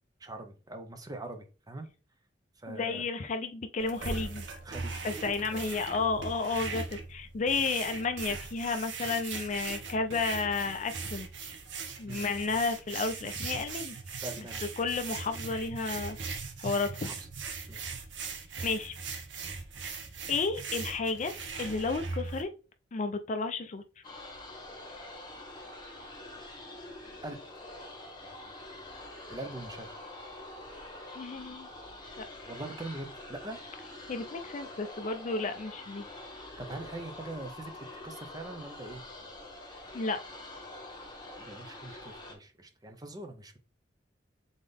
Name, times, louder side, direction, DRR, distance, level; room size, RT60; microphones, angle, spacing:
voice 1, 0.2-1.9 2.6-3.0 4.6-5.7 12.1-12.2 14.2-14.7 17.0-17.1 17.7-17.8 27.2-27.4 29.3-30.0 32.5-33.6 36.6-37.7 38.0-39.0 41.4-43.6, right 2 dB, 20° right, 0.6 m, -42 dB
voice 2, 2.7-4.4 5.0-11.3 12.0-14.2 14.8-16.2 16.6-17.1 18.6-19.0 19.9-20.0 20.3-22.5 22.9-23.8 31.1-31.7 34.1-36.1 39.9-40.2, left 4 dB, 40° left, 0.4 m, -32 dB
sound 1, 3.8-22.4, right 4 dB, 80° right, 0.8 m, -40 dB
sound 2, 24.0-42.3, left 2 dB, 25° left, 1.2 m, -46 dB
3.9 x 3.7 x 3.4 m
head